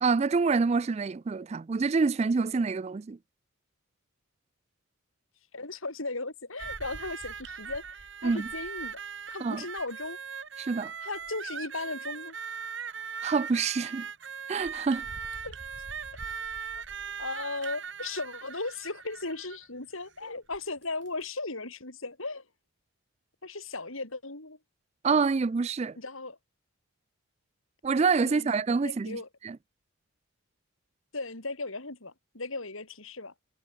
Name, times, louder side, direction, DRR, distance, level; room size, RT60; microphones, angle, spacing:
voice 1, 0.0-3.2 8.2-8.5 9.4-9.6 10.6-10.9 13.2-14.1 14.5-15.0 25.0-26.0 27.8-29.2 29.4-29.6, right 4 dB, 30° right, 0.3 m, -26 dB
voice 2, 5.5-9.0 9.3-10.2 11.0-12.3 15.4-15.6 17.2-22.4 23.4-24.6 26.0-26.4 28.2-28.6 28.8-29.3 31.1-33.3, left 3 dB, 75° left, 4.3 m, -37 dB
sound 1, 6.6-19.7 20.5-20.6 21.1-21.2, right 6 dB, 55° right, 2.1 m, -40 dB
head